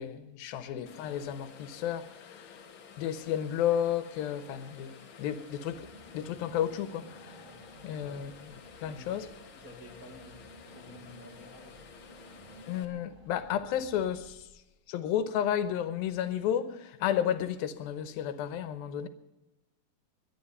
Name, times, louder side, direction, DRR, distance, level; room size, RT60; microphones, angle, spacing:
voice 1, 0.0-2.6 3.0-5.9 6.1-7.4 7.8-9.3 12.7-14.5 14.9-19.1, left 10 dB, 80° left, 2.6 m, -32 dB
sound 1, 0.9-12.9, left 6 dB, 60° left, 1.4 m, -52 dB
Car / Engine, 5.7-14.9, right 1 dB, 60° right, 0.5 m, -55 dB
voice 2, 8.8-11.9, left 1 dB, 45° right, 1.2 m, -53 dB
22.0 x 10.5 x 5.5 m
omnidirectional pair, 4.3 m